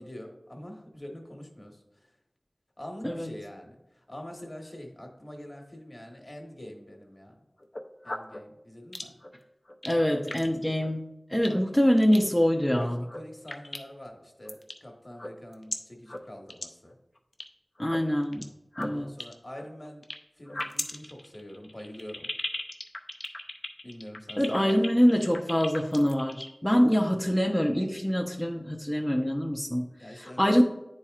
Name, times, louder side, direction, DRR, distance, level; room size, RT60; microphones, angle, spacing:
voice 1, 0.0-2.1 2.8-7.4 8.0-9.1 12.8-17.0 18.7-20.0 20.4-22.3 23.8-24.7 30.0-30.6, left 1 dB, 40° left, 2 dB, 1.2 m, -44 dB
sound 1, 7.6-8.4 8.9-9.3 9.7-9.9 10.3-10.5 10.8-10.9 11.4-11.6 12.0-12.2 12.9-13.2 13.5-14.1 14.5-14.8 15.1-15.7 16.1-16.2 16.5-16.6 16.9-17.4 17.8-18.4 18.7-20.1 20.5-26.5, left 1 dB, 60° left, 0.6 m, -36 dB
voice 2, 9.8-13.0 17.8-18.5 18.8-19.1 24.4-29.8 30.1-30.6, equal, 10° left, -1 dB, 0.5 m, -25 dB
9.7 x 4.3 x 2.4 m, 0.91 s
wide cardioid pair, 55°, 0 cm